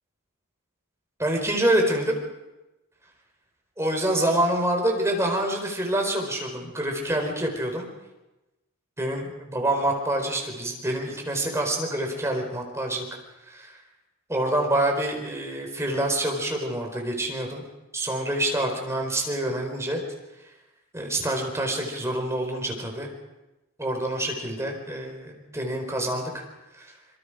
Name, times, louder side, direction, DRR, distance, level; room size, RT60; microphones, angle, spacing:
voice 1, 1.2-2.2 3.8-7.9 9.0-13.0 13.5-13.8 14.3-17.6 17.9-20.0 20.9-23.1 23.8-26.4 26.7-26.9, right 1 dB, 15° right, 2 dB, 4.6 m, -26 dB
26.5 x 23.0 x 5.1 m, 1.0 s
head